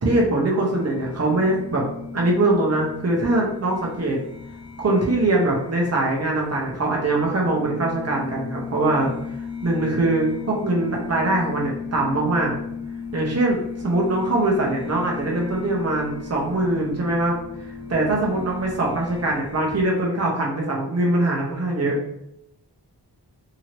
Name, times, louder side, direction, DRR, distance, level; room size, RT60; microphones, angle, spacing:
voice 1, 0.0-1.8 2.1-4.2 4.8-9.1 9.6-12.5 13.1-17.4 17.9-22.0, right 2 dB, 40° right, -2 dB, 0.7 m, -22 dB
sound 1, 0.7-19.8, left 5 dB, 10° right, 1.1 m, -36 dB
2.9 x 2.7 x 2.9 m, 0.78 s
wide cardioid pair, 50°, 41 cm